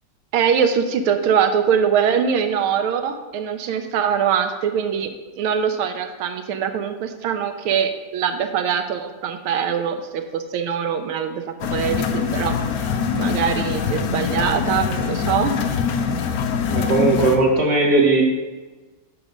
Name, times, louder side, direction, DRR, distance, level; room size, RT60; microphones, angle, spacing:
voice 1, 0.3-12.6 13.1-15.5, right 7 dB, 85° right, 7 dB, 1.5 m, -22 dB
sound 1, 11.6-17.4, left 6 dB, 80° left, 0.8 m, -23 dB
voice 2, 16.7-18.2, right 2 dB, 45° right, -1 dB, 1.2 m, -17 dB
7.2 x 4.9 x 5.2 m, 1.3 s
omnidirectional pair, 2.2 m